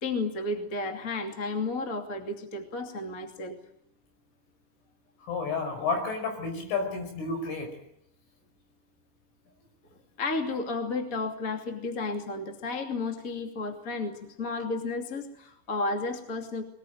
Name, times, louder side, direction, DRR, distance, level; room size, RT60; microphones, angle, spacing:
voice 1, 0.0-3.6 9.9-16.6, left 3 dB, 25° left, 5 dB, 1.9 m, -32 dB
voice 2, 5.3-7.7, left 4 dB, 80° left, 5 dB, 7.8 m, -31 dB
23.0 x 20.0 x 9.4 m, 0.78 s
omnidirectional pair, 5.6 m